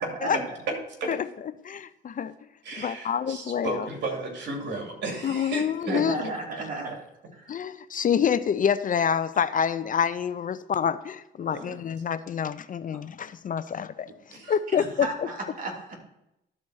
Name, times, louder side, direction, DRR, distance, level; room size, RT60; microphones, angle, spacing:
voice 1, 0.2-0.6 5.9-6.9 7.4-7.5 14.8-15.7, right 3 dB, 45° right, 3.0 m, -33 dB
voice 2, 1.6-2.3 2.8-3.9 5.2-6.2 7.5-14.1 14.5-15.1, left 8 dB, 45° left, 0.5 m, -27 dB
voice 3, 2.6-6.3 6.8-6.9 11.4-11.8 14.3-14.5, right 2 dB, 65° right, 2.8 m, -34 dB
12.0 x 4.3 x 6.2 m
cardioid pair, 90°, 20 cm